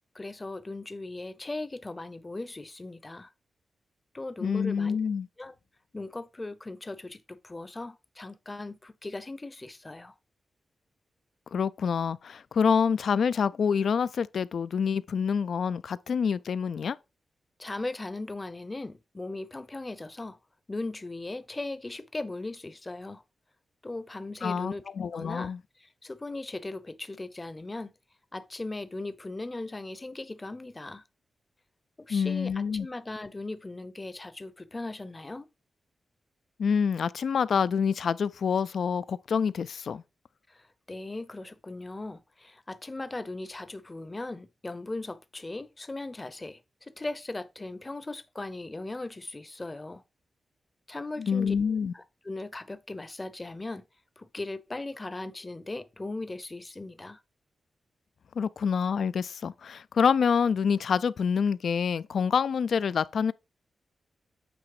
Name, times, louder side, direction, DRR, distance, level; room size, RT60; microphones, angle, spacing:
voice 1, 0.1-3.3 4.1-5.0 5.4-5.5 5.9-10.1 17.6-20.4 20.7-23.2 23.8-24.8 25.1-25.5 25.8-27.9 28.3-31.0 32.0-35.5 40.5-50.0 50.9-51.6 51.9-53.8 54.2-57.2, left 2 dB, 25° left, 0.6 m, -38 dB
voice 2, 4.4-5.3 11.5-17.0 24.4-25.6 32.1-32.9 36.6-40.0 51.2-51.9 58.4-63.3, left 6 dB, 75° left, 0.4 m, -27 dB
8.6 x 3.1 x 4.8 m
cardioid pair, 90°, 0 cm